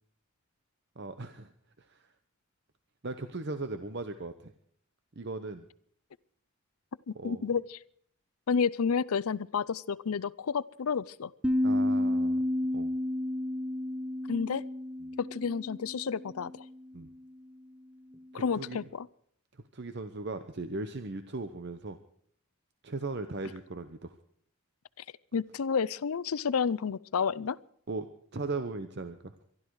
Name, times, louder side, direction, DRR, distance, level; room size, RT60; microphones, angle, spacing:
voice 1, 1.0-1.5 1.8-2.1 3.0-4.5 5.2-5.7 7.1-7.5 11.6-12.4 12.7-12.9 16.9-17.1 18.3-18.8 19.7-22.0 22.8-24.1 27.9-29.4, right 3 dB, 50° right, 9 dB, 0.8 m, -38 dB
voice 2, 7.1-7.8 8.5-11.3 14.3-14.6 15.2-16.6 18.3-19.1 25.3-27.6, left 6 dB, 85° left, 19 dB, 0.5 m, -30 dB
sound 1, 11.4-16.6, left 1 dB, 5° right, 0.6 m, -31 dB
23.0 x 12.5 x 4.8 m, 0.64 s
head